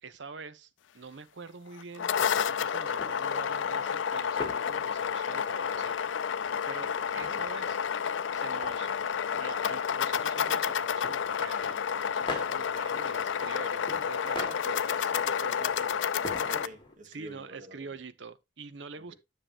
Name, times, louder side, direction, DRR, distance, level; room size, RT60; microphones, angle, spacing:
voice 1, 0.0-0.7 0.9-6.3 6.7-7.8 8.3-8.9 9.3-15.1 17.1-19.1, right 4 dB, 75° right, 0.8 m, -45 dB
sound 1, 1.8-16.7, left 7 dB, 80° left, 0.4 m, -30 dB
sound 2, 2.2-17.0, left 2 dB, 30° left, 2.2 m, -45 dB
voice 2, 15.1-17.9 19.0-19.2, right 1 dB, 45° right, 1.9 m, -47 dB
10.0 x 6.6 x 2.9 m
head